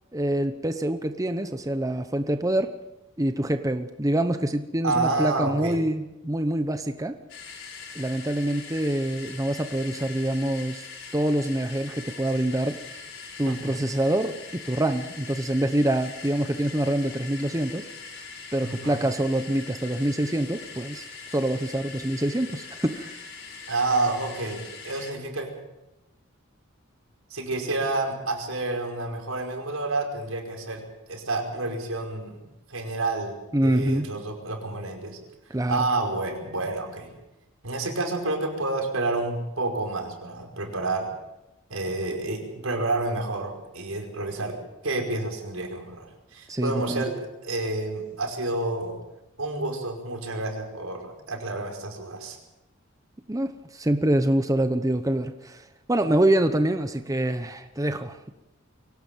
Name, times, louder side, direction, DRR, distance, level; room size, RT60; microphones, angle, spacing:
voice 1, 0.1-2.8 3.2-7.2 7.9-10.9 11.1-12.8 13.4-17.8 18.5-23.2 33.5-34.1 35.5-35.9 46.5-47.0 53.3-58.3, right 1 dB, 15° right, 8 dB, 0.9 m, -25 dB
voice 2, 4.8-5.8 13.5-13.8 18.6-19.0 23.7-25.5 27.3-30.8 31.1-32.4 32.7-33.3 33.6-35.2 35.7-37.1 37.6-41.1 41.7-44.6 44.8-47.1 47.4-48.9 49.4-52.4, right 2 dB, 90° right, 3 dB, 5.2 m, -29 dB
sound 1, 7.3-25.1, left 5 dB, 65° left, 6.1 m, -42 dB
24.0 x 17.5 x 7.4 m, 0.95 s
head